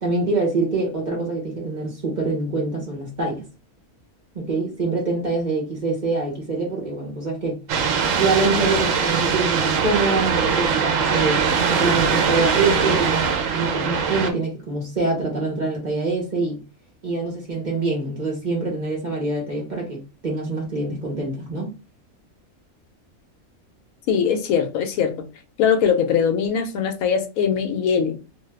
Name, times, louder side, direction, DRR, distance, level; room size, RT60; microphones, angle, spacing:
voice 1, 0.0-3.4 4.3-7.6 8.1-16.6 17.0-21.7, right 3 dB, 40° right, 0.8 m, -25 dB
sound 1, 7.7-14.3, right 6 dB, 70° right, 0.9 m, -21 dB
voice 2, 24.1-25.1 25.6-28.2, left 7 dB, 75° left, 1.0 m, -21 dB
2.6 x 2.3 x 3.2 m
omnidirectional pair, 1.5 m